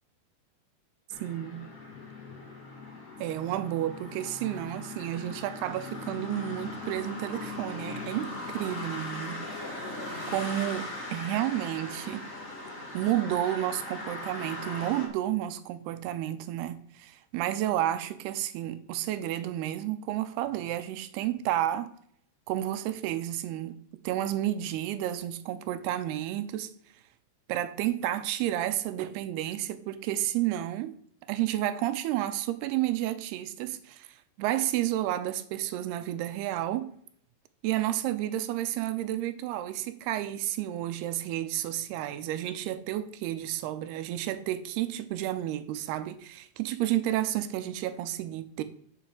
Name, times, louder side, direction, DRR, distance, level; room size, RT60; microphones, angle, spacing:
sound 1, 1.1-15.1, left 2 dB, 30° left, 1.6 m, -39 dB
voice 1, 1.2-1.7 3.2-9.6 10.3-12.3 12.9-21.9 22.5-26.7 27.5-31.0 31.3-36.9 37.6-48.6, right 13 dB, 80° right, 2.5 m, -31 dB
6.8 x 5.6 x 7.2 m
omnidirectional pair, 4.9 m